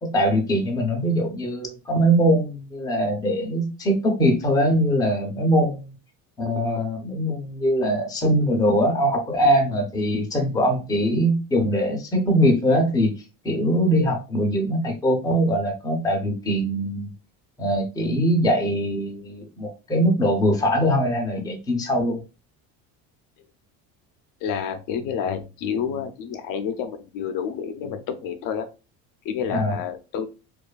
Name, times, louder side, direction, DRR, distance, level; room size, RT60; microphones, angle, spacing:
voice 1, 0.0-5.9 6.4-13.2 13.4-17.1 17.6-22.2 29.5-29.8, equal, 10° left, 1 dB, 0.5 m, -22 dB
voice 2, 24.4-28.7 29.2-30.3, left 7 dB, 65° left, 7 dB, 0.5 m, -29 dB
2.5 x 2.3 x 2.3 m, 0.30 s
cardioid pair, 120°, 37 cm